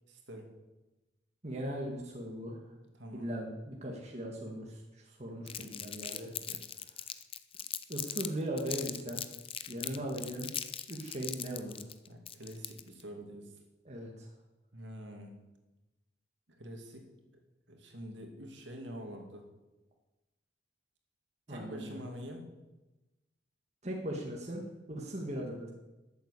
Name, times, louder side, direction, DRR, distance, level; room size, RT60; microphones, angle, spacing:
voice 1, 0.1-0.5 2.9-3.4 6.4-6.6 9.8-10.1 12.1-13.5 14.7-15.4 16.5-17.0 17.7-19.5 21.5-22.5, equal, 65° right, 3 dB, 2.6 m, -46 dB
voice 2, 1.4-2.6 3.1-4.8 5.1-6.3 7.9-9.2 9.7-10.5 10.9-11.9 13.9-14.3 21.5-22.0 23.8-24.6 24.9-25.7, right 1 dB, 35° right, -1 dB, 1.8 m, -38 dB
Crumpling crinkling, 5.5-8.3 8.6-13.0, left 9 dB, 30° left, 0.6 m, -40 dB
12.5 x 8.2 x 8.3 m, 1.1 s
head